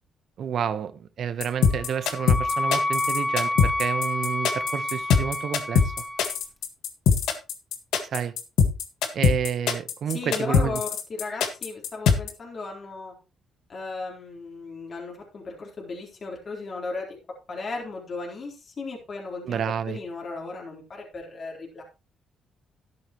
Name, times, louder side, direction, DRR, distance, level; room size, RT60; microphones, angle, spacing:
voice 1, 0.4-5.9 8.0-8.3 9.1-10.8 19.4-20.0, right 8 dB, 60° right, 1.1 m, -30 dB
sound 1, 1.4-12.3, left 6 dB, 85° left, 1.7 m, -21 dB
Wind instrument woodwind instrument, 1.6-6.3, left 1 dB, 15° left, 0.8 m, -29 dB
voice 2, 10.1-13.1 13.7-17.2 17.5-21.8, left 3 dB, 45° left, 3.9 m, -35 dB
12.5 x 10.0 x 3.1 m
cardioid pair, 90°, 0 cm